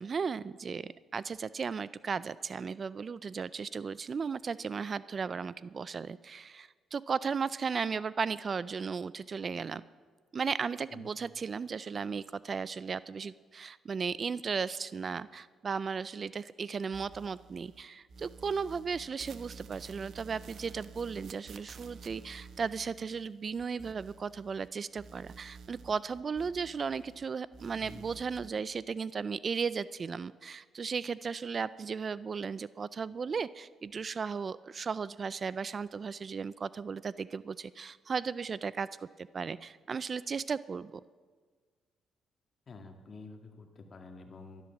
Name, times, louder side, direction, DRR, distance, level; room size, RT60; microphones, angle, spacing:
voice 1, 0.0-9.8 10.3-41.0, right 5 dB, 40° right, 18 dB, 0.3 m, -35 dB
sound 1, 16.9-17.8 18.1-24.7 25.0-27.3 27.5-28.5, right 5 dB, 60° right, 1.1 m, -51 dB
voice 2, 27.8-28.1 42.7-44.6, left 3 dB, 40° left, 4 dB, 1.9 m, -49 dB
12.0 x 11.5 x 7.1 m, 1.5 s
cardioid pair, 90°, 0 cm